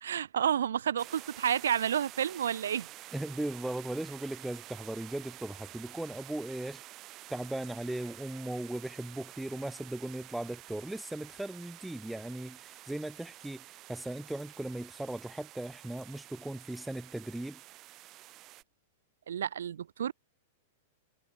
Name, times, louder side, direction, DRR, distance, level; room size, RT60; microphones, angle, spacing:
voice 1, 0.0-2.9 19.3-20.1, right 9 dB, 75° right, 0.6 m, -30 dB
sound 1, 1.0-18.6, right 16 dB, 40° right, 2.7 m, -50 dB
voice 2, 3.1-6.8 7.3-17.6, right 1 dB, 5° right, 0.5 m, -38 dB
hypercardioid pair, 105°, 0 cm